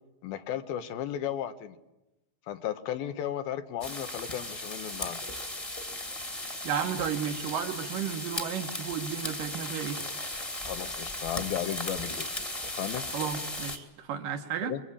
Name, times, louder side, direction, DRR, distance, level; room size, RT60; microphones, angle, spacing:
voice 1, 0.2-1.8 2.5-5.2 10.6-12.4 12.6-13.1 14.6-14.8, left 10 dB, 80° left, 10 dB, 2.9 m, -35 dB
sound 1, 3.8-13.8, left 1 dB, 15° left, 1.5 m, -36 dB
voice 2, 6.6-10.0 13.1-14.7, right 8 dB, 70° right, 6 dB, 2.9 m, -33 dB
25.5 x 22.5 x 8.6 m, 0.99 s
omnidirectional pair, 4.3 m